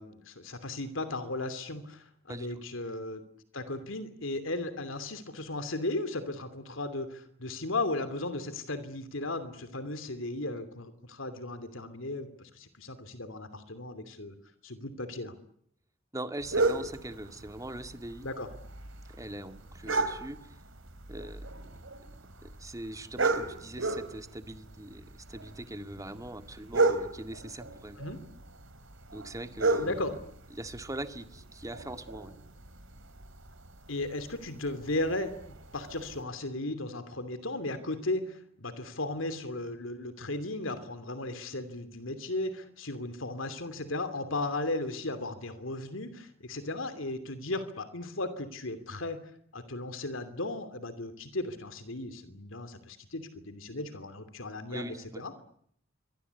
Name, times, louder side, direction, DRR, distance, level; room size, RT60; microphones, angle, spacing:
voice 1, 0.0-3.2 3.5-14.3 14.6-15.3 18.2-18.5 28.0-28.2 29.8-30.2 33.9-49.2 49.5-55.4, left 2 dB, 75° left, 11 dB, 2.9 m, -36 dB
voice 2, 2.3-2.6 16.1-18.3 19.1-20.6 21.1-21.5 22.4-28.0 29.1-30.1 30.5-32.3 54.7-55.2, right 1 dB, 15° right, 9 dB, 2.0 m, -41 dB
sound 1, 16.4-36.2, right 3 dB, 75° right, 3.5 m, -35 dB
28.0 x 24.5 x 8.3 m, 0.67 s
head